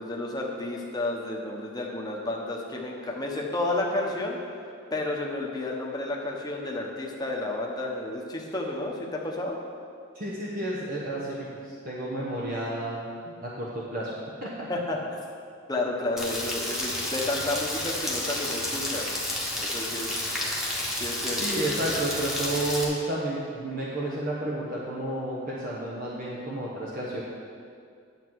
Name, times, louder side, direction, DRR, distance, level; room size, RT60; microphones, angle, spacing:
voice 1, 0.0-4.4 4.9-9.6 14.7-15.2 15.7-19.1 19.6-20.2 21.0-21.4, left 2 dB, 20° left, -1 dB, 1.1 m, -31 dB
voice 2, 10.1-13.1 13.4-14.1 14.4-14.7 21.4-27.2, right 1 dB, 45° right, -6 dB, 1.1 m, -31 dB
Rain, 16.2-22.8, left 1 dB, ahead, 1.4 m, -31 dB
10.0 x 7.3 x 4.7 m, 2.3 s
head